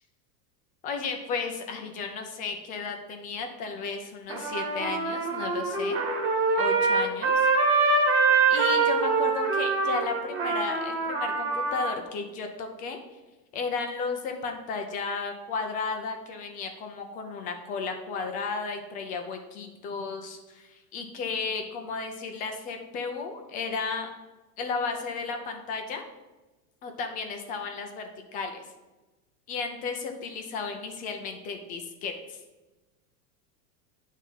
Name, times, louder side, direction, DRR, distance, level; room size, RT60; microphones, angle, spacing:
voice 1, 0.8-6.0 6.5-7.5 8.5-13.0 13.5-24.1 24.6-26.0 26.8-28.6 29.5-32.4, left 4 dB, 20° left, 5 dB, 0.3 m, -34 dB
Trumpet, 4.3-11.9, right 4 dB, 25° right, 1.5 m, -24 dB
9.2 x 3.6 x 5.4 m, 1.1 s
supercardioid pair, 140°, 48 cm